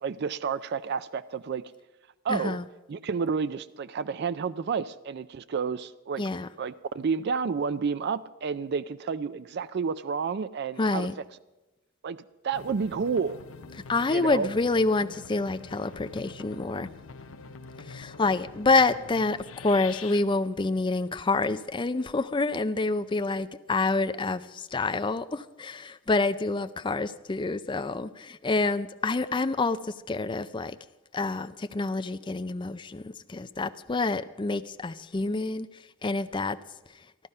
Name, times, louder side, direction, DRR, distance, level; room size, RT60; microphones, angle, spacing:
voice 1, 0.0-1.6 2.2-2.6 2.9-6.2 6.6-11.1 12.0-12.2 12.4-13.4 14.1-14.5, right 5 dB, 50° right, 15 dB, 0.4 m, -30 dB
voice 2, 2.3-2.7 6.2-6.5 10.8-11.1 13.9-16.9 17.8-30.8 31.1-35.7 36.0-36.6, left 3 dB, 25° left, 11 dB, 0.4 m, -27 dB
sound 1, 12.5-20.2, left 4 dB, 70° left, 0.7 m, -45 dB
14.5 x 12.0 x 5.4 m, 1.1 s
head